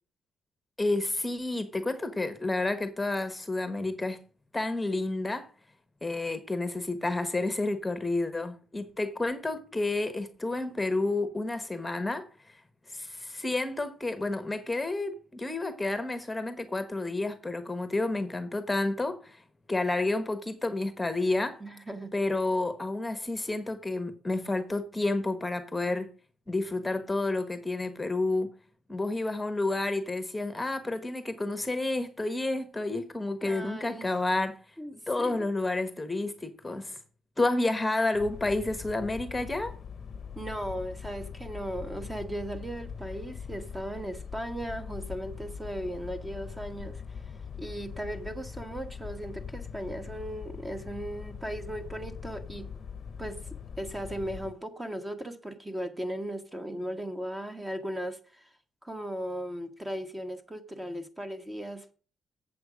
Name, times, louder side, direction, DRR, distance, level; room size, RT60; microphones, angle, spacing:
voice 1, 0.8-4.2 4.5-5.5 6.0-12.5 12.9-19.4 19.7-21.6 22.1-26.1 26.5-28.5 28.9-34.6 35.1-37.0 37.4-39.7, left 2 dB, 15° left, 1.1 m, -30 dB
voice 2, 21.6-22.1 33.4-34.1 34.8-35.5 40.3-47.2 47.6-52.7 53.2-53.4 53.8-58.5 58.8-61.9, right 1 dB, 15° right, 1.3 m, -37 dB
sound 1, 38.1-54.5, left 6 dB, 45° left, 0.8 m, -42 dB
7.9 x 7.6 x 5.0 m
cardioid pair, 90°, 0 cm